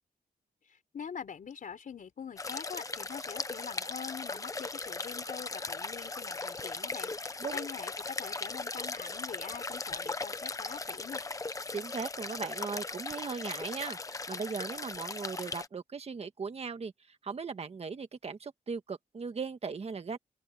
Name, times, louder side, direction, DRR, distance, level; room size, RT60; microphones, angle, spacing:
voice 1, 0.9-11.3, left 7 dB, 55° left, 3.7 m, -44 dB
sound 1, 2.4-15.7, left 3 dB, 20° left, 0.8 m, -38 dB
voice 2, 11.7-16.9 17.2-20.2, right 5 dB, 40° right, 1.6 m, -38 dB
open air
wide cardioid pair, 170°, 16 cm